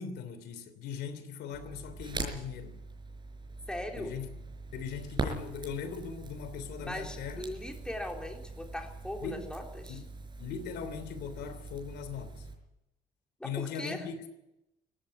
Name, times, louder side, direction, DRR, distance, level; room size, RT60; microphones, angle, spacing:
voice 1, 0.0-2.8 4.0-4.3 4.7-7.4 9.2-9.5 9.9-10.1 10.4-12.5 13.4-14.3, left 7 dB, 80° left, 3.2 m, -39 dB
Crackle, 1.5-12.5, right 3 dB, 25° right, 5.1 m, -42 dB
voice 2, 3.7-4.1 6.8-10.0 13.4-14.1, left 1 dB, 5° left, 3.7 m, -39 dB
18.5 x 15.5 x 9.9 m
cardioid pair, 110°, 17 cm